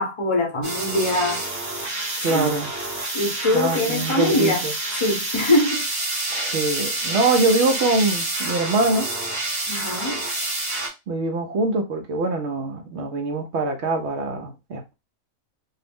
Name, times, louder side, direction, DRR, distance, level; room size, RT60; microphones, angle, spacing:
voice 1, 0.0-1.4 2.3-2.5 3.1-4.6 4.9-5.8 9.7-10.2, left 1 dB, 30° left, 0.7 m, -22 dB
sound 1, 0.6-10.9, right 2 dB, 20° right, 0.6 m, -28 dB
voice 2, 2.2-2.7 3.5-4.7 6.3-9.1 11.1-14.9, right 2 dB, 65° right, 0.8 m, -23 dB
2.5 x 2.0 x 3.4 m
omnidirectional pair, 1.4 m